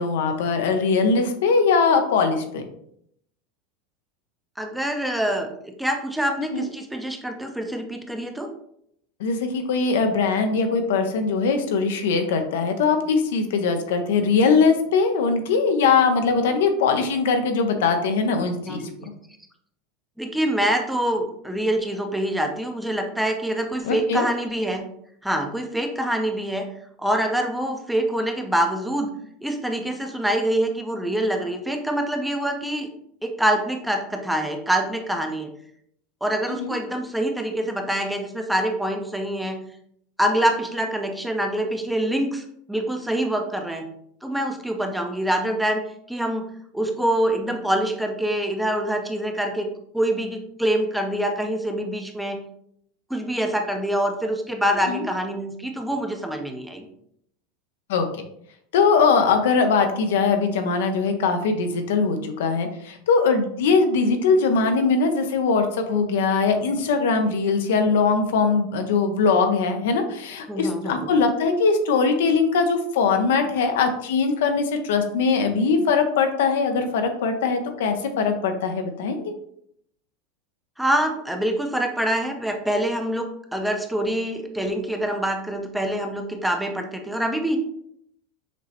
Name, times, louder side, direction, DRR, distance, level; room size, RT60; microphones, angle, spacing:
voice 1, 0.0-2.6 6.5-6.7 9.2-18.8 23.8-24.3 36.6-36.7 54.9-55.0 57.9-58.0 58.7-79.3, left 4 dB, 85° left, 6 dB, 0.6 m, -21 dB
voice 2, 4.6-5.5 5.8-8.5 18.6-19.1 20.2-24.8 25.2-26.7 27.0-29.1 29.4-32.9 33.2-35.5 36.2-39.6 40.2-43.9 44.2-45.8 46.1-46.5 46.7-49.7 49.9-52.4 53.1-56.9 70.5-71.1 80.8-87.6, right 1 dB, 5° right, 4 dB, 0.5 m, -25 dB
6.0 x 2.0 x 2.9 m, 0.70 s
supercardioid pair, 130°, 0 cm